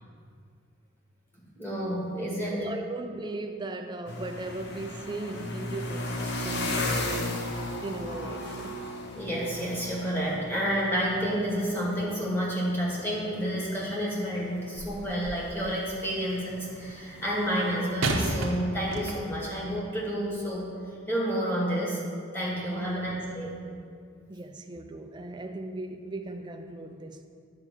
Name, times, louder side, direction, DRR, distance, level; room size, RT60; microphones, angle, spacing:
voice 1, 1.6-2.6 9.1-20.7 21.1-22.0 22.3-23.6, equal, 10° left, 1.9 m, -30 dB
voice 2, 2.5-7.5 7.8-8.9 22.8-23.1 24.3-27.3, right 2 dB, 20° right, 0.5 m, -38 dB
sound 1, 4.1-18.0, left 1 dB, 55° left, 1.0 m, -36 dB
sound 2, 14.8-15.6 18.0-19.5 20.3-20.5, right 2 dB, 70° right, 0.9 m, -32 dB
9.7 x 4.8 x 7.5 m
head